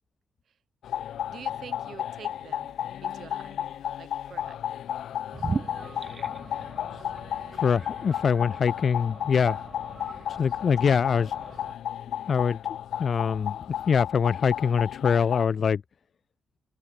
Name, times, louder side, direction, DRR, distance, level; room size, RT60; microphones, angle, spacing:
sound 1, 0.8-15.4, left 10 dB, 75° left, 0.6 m, -34 dB
voice 1, 1.3-3.6 4.0-4.6 10.6-10.7, right 8 dB, 55° right, 6.8 m, -46 dB
sound 2, 5.3-11.7, right 4 dB, 30° right, 2.3 m, -39 dB
voice 2, 7.5-9.6 10.4-11.3 12.3-12.6 13.0-13.6 13.9-15.8, left 6 dB, 45° left, 0.4 m, -23 dB
cardioid pair, 145°, 0 cm